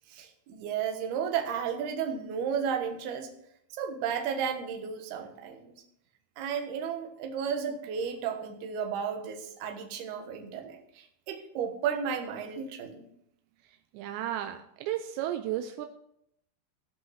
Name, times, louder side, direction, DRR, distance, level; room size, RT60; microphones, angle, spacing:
voice 1, 0.1-3.3 3.8-5.7 6.4-13.0, right 7 dB, 65° right, 4 dB, 2.8 m, -33 dB
voice 2, 13.9-15.9, right 12 dB, 85° right, 6 dB, 2.5 m, -33 dB
16.0 x 5.7 x 5.8 m, 0.73 s
omnidirectional pair, 5.8 m